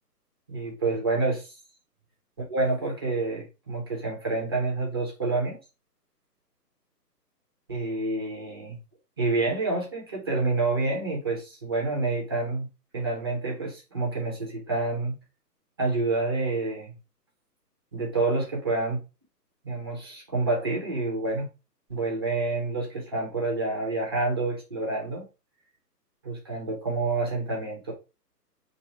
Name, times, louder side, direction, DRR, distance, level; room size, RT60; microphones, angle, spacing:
voice 1, 0.5-1.6 2.5-5.6 7.7-8.8 9.2-12.7 12.9-15.2 15.8-17.0 17.9-19.0 19.6-21.5 21.9-25.2 26.2-27.9, right 3 dB, 15° right, -1 dB, 0.6 m, -28 dB
5.7 x 2.6 x 3.0 m, 0.31 s
hypercardioid pair, 150°, 49 cm